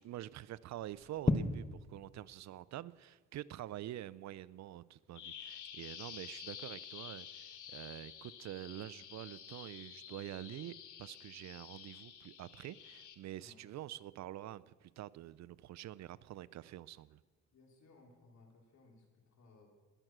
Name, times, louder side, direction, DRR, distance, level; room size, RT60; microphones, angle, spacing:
voice 1, 0.0-17.2, right 13 dB, 65° right, 19 dB, 0.5 m, -47 dB
sound 1, 0.6-17.8, left 3 dB, 20° left, 1.2 m, -46 dB
Bird vocalization bird call bird song, 5.1-13.1, left 9 dB, 80° left, 1.5 m, -50 dB
voice 2, 17.5-19.7, left 3 dB, 65° left, 1 dB, 3.7 m, -62 dB
21.0 x 7.9 x 6.1 m, 1.4 s
cardioid pair, 90°, 30 cm